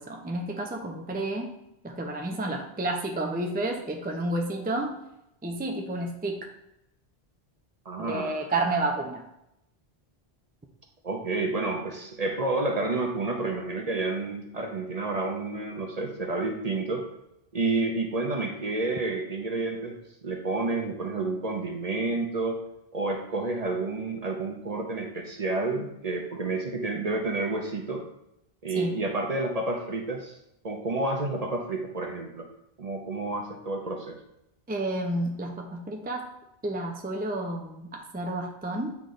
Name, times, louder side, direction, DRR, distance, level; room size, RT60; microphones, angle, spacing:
voice 1, 0.0-1.5 1.8-5.0 5.4-6.5 8.0-9.2 28.7-29.0 34.7-36.3 36.6-38.9, right 2 dB, 10° right, 1 dB, 0.5 m, -30 dB
voice 2, 7.9-8.5 11.0-17.1 17.5-22.6 22.9-28.0 28.6-30.3 30.6-32.5 32.8-34.2, right 3 dB, 40° right, 2 dB, 0.8 m, -30 dB
8.3 x 3.2 x 3.9 m, 0.83 s
omnidirectional pair, 1.1 m